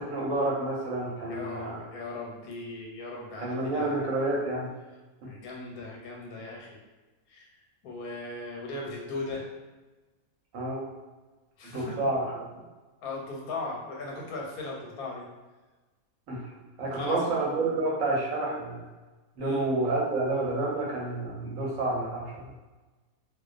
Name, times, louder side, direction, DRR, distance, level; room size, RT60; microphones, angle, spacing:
voice 1, 0.0-1.8 3.4-4.7 10.5-10.9 11.6-12.4 16.3-16.4 16.8-18.8 19.4-22.5, right 2 dB, 70° right, -4 dB, 1.0 m, -29 dB
voice 2, 1.3-4.1 5.3-6.8 7.3-7.5 7.8-9.5 11.6-12.0 13.0-15.2 16.9-17.3 19.4-19.6, left 2 dB, 85° left, -1 dB, 1.1 m, -38 dB
2.4 x 2.2 x 2.4 m, 1.2 s
omnidirectional pair, 1.5 m